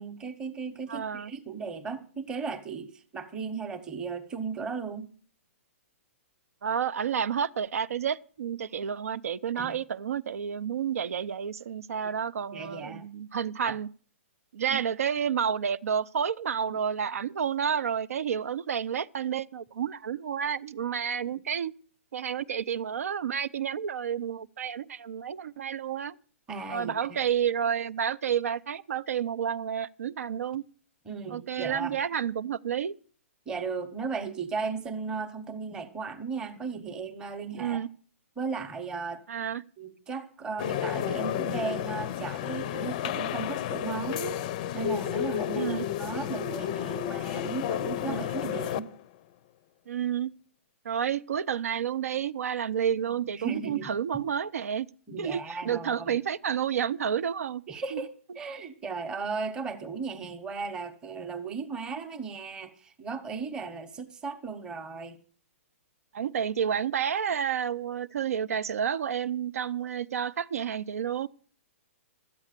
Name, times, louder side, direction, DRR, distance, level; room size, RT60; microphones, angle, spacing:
voice 1, 0.0-5.1 9.5-9.7 12.5-13.1 13.7-13.8 14.7-14.8 26.5-27.2 31.1-32.0 33.5-37.8 38.4-39.2 39.8-44.4 44.7-48.9 53.4-53.9 55.1-56.2 57.7-58.1 58.4-65.2, right 5 dB, 10° right, 0.8 m, -36 dB
voice 2, 0.9-1.3 6.6-13.9 14.5-21.7 22.1-26.2 26.7-30.6 31.3-32.9 37.6-37.9 39.3-39.6 45.5-45.8 48.0-48.2 49.9-50.3 50.8-54.9 55.2-57.6 57.9-58.0 66.1-71.3, right 8 dB, 80° right, 0.6 m, -30 dB
sound 1, 40.6-49.0, left 11 dB, 30° left, 0.5 m, -32 dB
13.0 x 8.3 x 6.6 m
hypercardioid pair, 170°, 8 cm